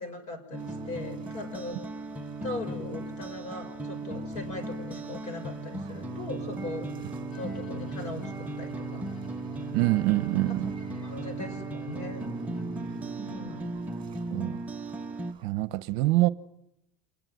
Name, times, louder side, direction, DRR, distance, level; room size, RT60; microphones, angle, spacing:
voice 1, 0.0-1.8 2.4-6.9 7.4-9.0 10.4-10.5 11.0-12.3 13.2-13.7, left 2 dB, 45° left, 6.1 m, -39 dB
sound 1, 0.5-15.3, right 2 dB, 10° right, 1.2 m, -36 dB
sound 2, 0.6-15.5, right 8 dB, 30° right, 5.6 m, -55 dB
Bowed string instrument, 7.3-13.0, left 6 dB, 80° left, 5.3 m, -55 dB
voice 2, 9.7-10.7 14.3-14.6 15.4-16.3, right 18 dB, 60° right, 0.9 m, -25 dB
27.5 x 20.5 x 9.4 m
supercardioid pair, 140°, 17 cm